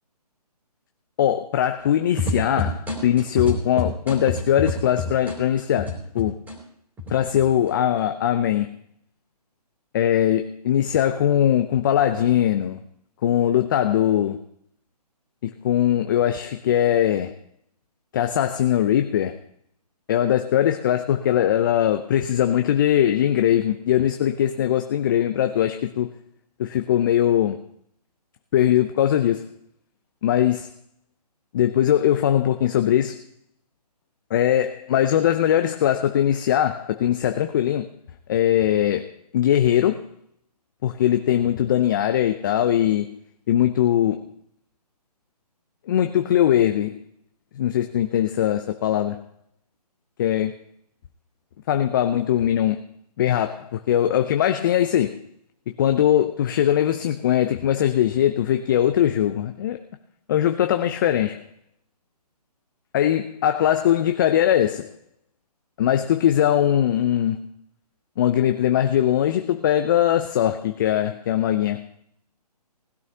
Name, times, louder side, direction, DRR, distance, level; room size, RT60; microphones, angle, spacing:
voice 1, 1.2-6.4 7.1-8.8 9.9-12.8 13.2-14.4 15.4-17.4 18.1-19.4 20.1-26.1 26.6-27.6 28.5-29.5 30.2-30.7 31.5-33.2 34.3-37.9 38.3-40.1 40.8-43.2 43.5-44.3 45.9-47.0 47.5-49.2 50.2-50.6 51.7-52.8 53.2-55.2 55.7-59.8 60.3-61.5 62.9-64.9 65.8-67.5 68.2-71.9, left 11 dB, 30° left, 0.6 m, -21 dB
sound 1, 2.2-6.5 7.0-7.7, left 2 dB, 10° right, 3.3 m, -27 dB
19.5 x 12.0 x 2.8 m
figure-of-eight pair, 145°, 21 cm